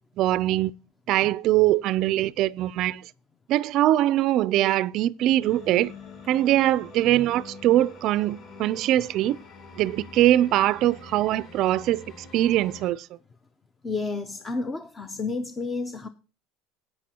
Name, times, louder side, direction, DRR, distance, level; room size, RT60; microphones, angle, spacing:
voice 1, 0.2-0.7 1.1-3.0 3.5-5.9 6.3-9.4 9.7-12.0 12.3-13.1, right 14 dB, 45° right, 0.4 m, -22 dB
sound 1, 5.4-12.9, left 3 dB, 40° left, 3.9 m, -45 dB
voice 2, 13.8-16.1, left 3 dB, 15° left, 0.6 m, -31 dB
16.0 x 9.0 x 2.9 m
cardioid pair, 160°, 0 cm